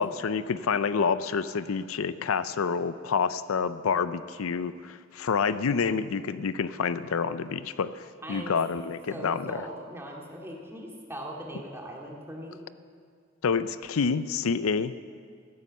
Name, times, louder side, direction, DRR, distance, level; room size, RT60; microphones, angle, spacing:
voice 1, 0.0-8.0 8.3-9.6 13.4-14.9, left 5 dB, 90° left, 14 dB, 0.5 m, -28 dB
voice 2, 8.2-8.6 9.1-12.6, equal, 10° right, -1 dB, 2.2 m, -40 dB
16.5 x 9.7 x 7.4 m, 2.2 s
head